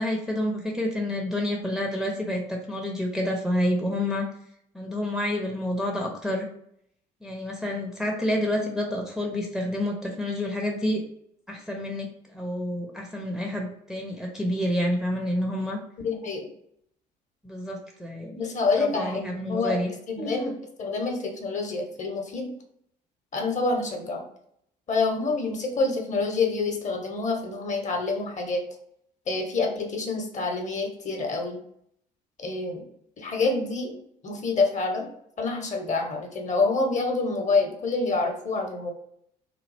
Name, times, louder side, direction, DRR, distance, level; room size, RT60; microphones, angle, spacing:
voice 1, 0.0-4.3 4.7-6.5 7.2-11.0 11.5-15.8 17.4-18.4 18.8-19.9 20.2-20.4, left 1 dB, ahead, 0 dB, 0.6 m, -28 dB
voice 2, 16.0-16.5 18.4-19.8 20.1-20.5 20.8-22.5 23.3-24.2 24.9-28.6 29.3-31.6 32.4-32.8 33.2-34.0 34.2-35.1 35.4-38.9, left 3 dB, 35° left, 2 dB, 0.9 m, -27 dB
3.0 x 2.3 x 3.3 m, 0.70 s
figure-of-eight pair, 55°, 21 cm